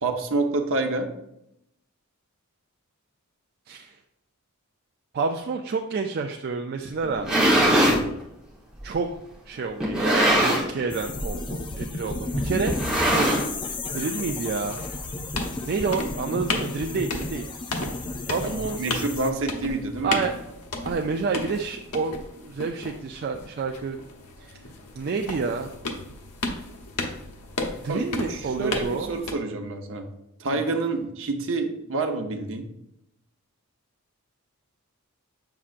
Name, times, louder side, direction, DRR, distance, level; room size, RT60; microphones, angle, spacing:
voice 1, 0.0-1.1 18.4-20.2 27.9-30.1 30.4-32.7, right 3 dB, 60° right, 4 dB, 0.8 m, -28 dB
voice 2, 3.7-4.0 5.1-7.5 8.8-9.1 9.5-13.3 13.6-14.8 15.7-17.5 18.3-18.8 20.0-20.3 20.8-24.0 24.4-24.6 25.0-25.7 27.8-29.2 30.5-30.6, right 4 dB, 45° right, 4 dB, 0.3 m, -29 dB
sound 1, 7.0-8.0 8.8-8.9 9.8-10.8 11.1-11.4 11.7-11.8 12.7-13.7, right 1 dB, 5° right, 1.1 m, -21 dB
sound 2, 10.9-19.3, left 2 dB, 20° left, 0.4 m, -33 dB
sound 3, 13.9-29.3, left 2 dB, 85° left, 0.9 m, -35 dB
7.4 x 5.8 x 2.5 m, 0.83 s
head